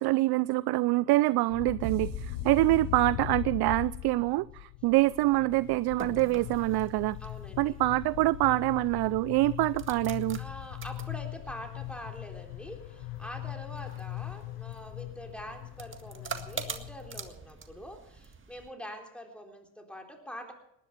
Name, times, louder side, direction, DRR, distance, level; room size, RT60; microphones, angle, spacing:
voice 1, 0.0-7.2 7.6-10.4, right 19 dB, 50° right, 19 dB, 0.5 m, -25 dB
sound 1, 1.5-17.3, left 19 dB, 75° left, 0.7 m, -40 dB
sound 2, 1.8-3.7, right 17 dB, 70° right, 0.9 m, -42 dB
sound 3, 5.6-18.7, right 5 dB, 25° right, 1.9 m, -46 dB
voice 2, 7.2-7.8 10.4-20.5, equal, ahead, 2 dB, 3.7 m, -45 dB
19.5 x 11.0 x 6.0 m, 0.77 s
supercardioid pair, 80°, 49 cm